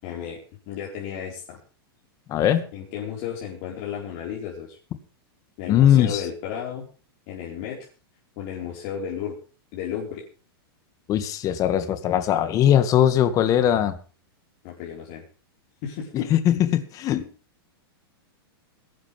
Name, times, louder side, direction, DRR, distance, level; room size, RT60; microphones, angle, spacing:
voice 1, 0.0-0.4 0.7-1.6 2.7-4.8 5.6-6.9 7.3-7.9 8.4-9.4 9.7-10.2 14.6-15.2 15.8-16.3, left 8 dB, 45° left, -3 dB, 4.8 m, -33 dB
voice 2, 2.3-2.7 5.7-6.3 11.1-14.0 16.1-17.3, left 10 dB, 25° left, 11 dB, 2.0 m, -20 dB
21.5 x 12.0 x 3.5 m, 0.37 s
supercardioid pair, 155°, 13 cm